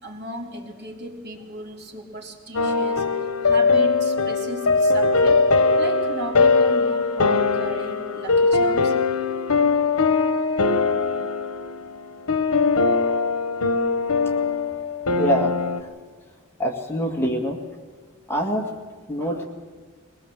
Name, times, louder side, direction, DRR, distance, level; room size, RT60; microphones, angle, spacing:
voice 1, 0.0-3.1 3.4-5.5 5.8-9.0, equal, 55° right, 2 dB, 2.7 m, -35 dB
sound 1, 2.5-15.8, left 4 dB, 85° left, 1.1 m, -21 dB
voice 2, 15.2-15.5 16.6-17.6 18.3-18.6 19.1-19.5, equal, 10° left, 1 dB, 2.2 m, -24 dB
22.5 x 20.0 x 7.5 m, 1.4 s
head